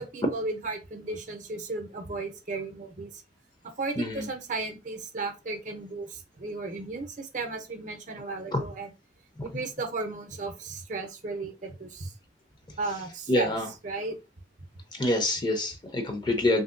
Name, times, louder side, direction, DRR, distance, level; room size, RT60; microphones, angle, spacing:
voice 1, 0.0-3.2 3.8-8.9 9.4-12.1 12.8-13.6 13.8-14.2, right 3 dB, 45° right, 5 dB, 0.6 m, -35 dB
voice 2, 13.3-13.7 15.0-16.6, left 1 dB, 25° left, 4 dB, 0.6 m, -26 dB
3.2 x 2.6 x 2.5 m, 0.27 s
head